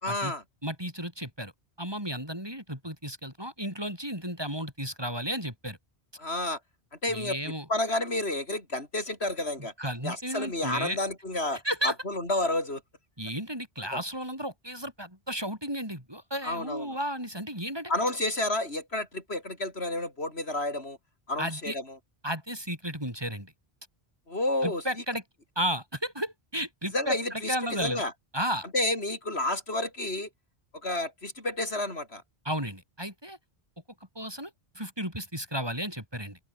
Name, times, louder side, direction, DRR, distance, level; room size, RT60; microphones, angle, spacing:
voice 1, 0.0-0.4 6.2-6.6 7.0-7.4 7.7-9.7 10.0-12.8 13.9-14.0 16.4-17.0 17.9-21.0 21.3-22.0 24.3-24.8 26.9-28.1 28.7-30.3 30.8-32.2, left 2 dB, 85° left, 5.9 m, -30 dB
voice 2, 0.6-1.5 1.8-5.8 7.1-7.7 9.8-11.0 11.6-11.9 13.2-17.9 21.4-21.8 22.2-23.5 24.6-25.2 25.6-28.0 28.3-28.7 32.4-33.4 34.1-34.5 34.7-36.4, equal, 25° right, 8.1 m, -33 dB
open air
omnidirectional pair, 1.0 m